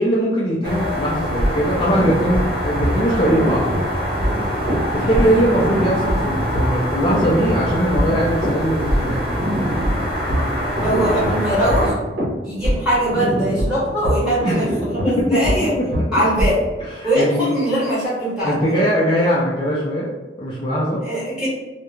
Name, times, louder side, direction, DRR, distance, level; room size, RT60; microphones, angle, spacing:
voice 1, 0.0-3.6 4.9-9.3 14.4-14.6 15.1-15.9 17.0-17.5 18.4-20.1 20.4-21.0, equal, 30° left, -6 dB, 0.4 m, -20 dB
sound 1, 0.6-11.9, equal, 60° right, 0.9 m, -25 dB
sound 2, 1.3-16.7, equal, 85° right, 0.8 m, -24 dB
voice 2, 4.9-5.4 10.8-12.0 12.4-15.7 16.1-16.6 17.0-18.7 21.0-21.5, right 1 dB, 5° right, -10 dB, 1.2 m, -21 dB
2.3 x 2.1 x 3.0 m, 1.1 s
head